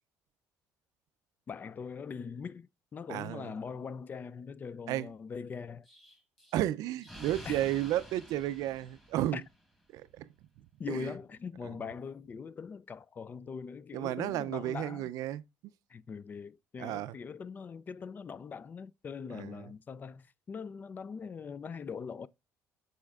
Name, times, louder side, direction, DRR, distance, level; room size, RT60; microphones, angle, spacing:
voice 1, 1.5-5.9 7.5-7.7 9.3-9.4 10.8-15.0 15.9-22.3, left 6 dB, 30° left, 0.3 m, -42 dB
voice 2, 3.1-3.5 4.9-5.1 6.5-9.4 9.9-10.3 10.9-11.1 13.9-15.4 16.8-17.2 19.3-19.6, right 13 dB, 70° right, 0.4 m, -33 dB
Explosion, 5.9-9.7, equal, 5° left, 1.7 m, -50 dB
11.0 x 4.3 x 2.4 m
cardioid pair, 115°, 6 cm